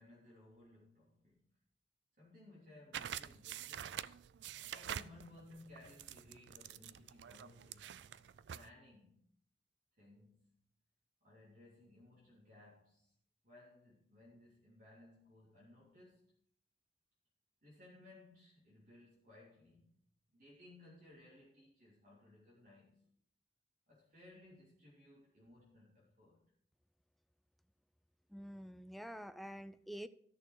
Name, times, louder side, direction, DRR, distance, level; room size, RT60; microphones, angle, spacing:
voice 1, 0.0-1.5 2.2-8.1 8.5-9.3 10.0-10.7 11.2-13.1 13.4-16.3 17.6-20.0 20.3-23.0 23.9-26.5, left 2 dB, 55° right, -7 dB, 3.1 m, -61 dB
sound 1, 2.9-8.7, right 9 dB, 85° right, 0.4 m, -47 dB
voice 2, 28.3-30.1, equal, ahead, 12 dB, 0.4 m, -47 dB
13.5 x 6.5 x 4.7 m, 0.64 s
head